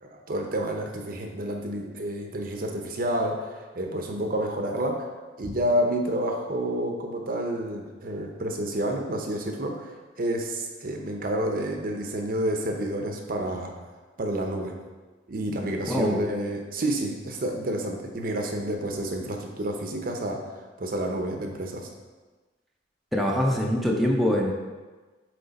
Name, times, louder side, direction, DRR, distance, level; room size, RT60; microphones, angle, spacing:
voice 1, 0.0-5.1 5.4-13.7 14.2-14.8 15.3-20.5 20.8-21.9, right 1 dB, 50° right, 2 dB, 0.7 m, -29 dB
voice 2, 15.9-16.2 23.1-24.5, equal, ahead, -1 dB, 0.6 m, -23 dB
7.7 x 3.2 x 4.0 m, 1.3 s
head